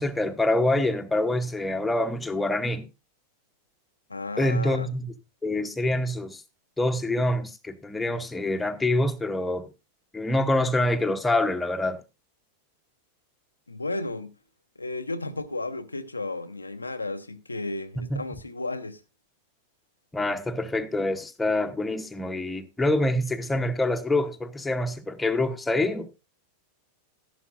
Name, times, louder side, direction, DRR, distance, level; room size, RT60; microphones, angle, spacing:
voice 1, 0.0-2.9 4.4-5.1 5.4-6.4 6.8-9.7 10.1-12.0 18.0-18.2 20.1-26.1, left 1 dB, 10° left, 1.0 m, -26 dB
voice 2, 4.1-4.9 13.7-14.4 14.8-19.0, left 2 dB, 80° left, 0.6 m, -33 dB
13.5 x 11.0 x 2.5 m
figure-of-eight pair, 90°, 0 cm